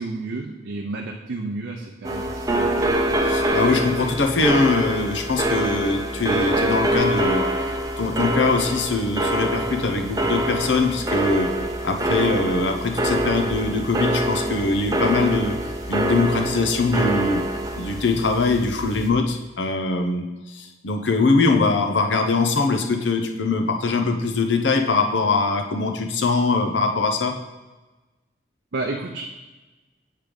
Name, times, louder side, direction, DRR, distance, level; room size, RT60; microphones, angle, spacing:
voice 1, 0.0-3.3 28.7-29.3, right 3 dB, 85° right, 1 dB, 0.6 m, -31 dB
sound 1, 2.0-19.1, right 1 dB, 20° right, 0.5 m, -25 dB
voice 2, 3.2-7.4 8.0-11.5 11.8-15.5 15.9-17.4 17.8-27.3, left 3 dB, 80° left, 5 dB, 0.7 m, -22 dB
7.4 x 3.3 x 5.2 m, 1.2 s
head